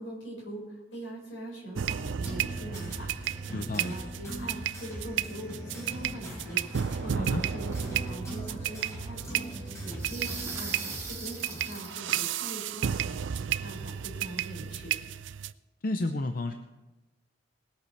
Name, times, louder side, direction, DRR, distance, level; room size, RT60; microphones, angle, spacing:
voice 1, 0.0-14.9, right 1 dB, 75° left, -2 dB, 5.5 m, -42 dB
sound 1, 1.7-15.5, right 9 dB, 70° right, 0.4 m, -33 dB
sound 2, 2.0-11.8, equal, 15° left, 3.8 m, -41 dB
voice 2, 3.5-4.0 7.2-7.4 15.8-16.5, left 2 dB, 50° left, 6 dB, 0.7 m, -31 dB
sound 3, 7.6-8.3 9.2-12.1, right 5 dB, 15° right, 2.3 m, -40 dB
20.5 x 8.4 x 4.6 m, 1.1 s
head